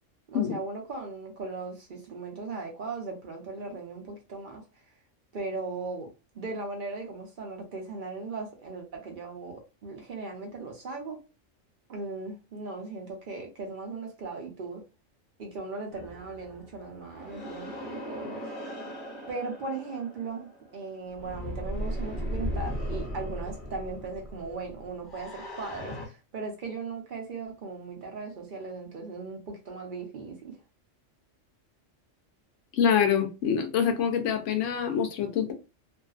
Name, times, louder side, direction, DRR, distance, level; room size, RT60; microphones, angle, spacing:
voice 1, 0.3-4.6 5.3-6.1 6.3-11.2 11.9-14.8 15.4-18.5 19.3-30.6, right 3 dB, 50° right, 0.7 m, -38 dB
sound 1, 15.9-26.1, equal, 50° left, 0.8 m, -37 dB
voice 2, 32.7-35.5, left 7 dB, 75° left, 0.9 m, -25 dB
2.6 x 2.4 x 2.3 m
omnidirectional pair, 1.3 m